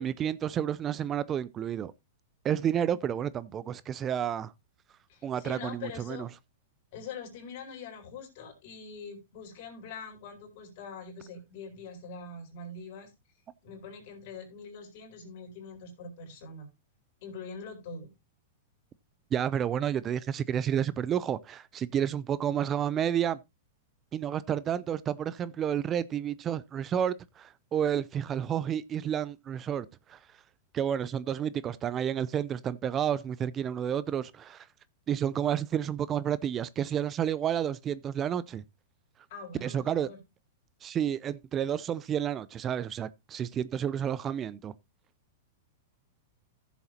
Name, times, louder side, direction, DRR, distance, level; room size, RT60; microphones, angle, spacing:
voice 1, 0.0-1.9 2.4-4.5 5.2-6.3 19.3-23.4 24.1-30.2 30.7-34.7 35.1-38.6 39.6-40.1 40.8-44.7, right 9 dB, 25° right, 0.4 m, -30 dB
voice 2, 5.1-6.3 6.9-13.1 13.6-16.7 17.2-18.1 39.3-40.2, left 4 dB, 55° left, 4.1 m, -43 dB
14.5 x 7.2 x 2.8 m
hypercardioid pair, 125°, 0 cm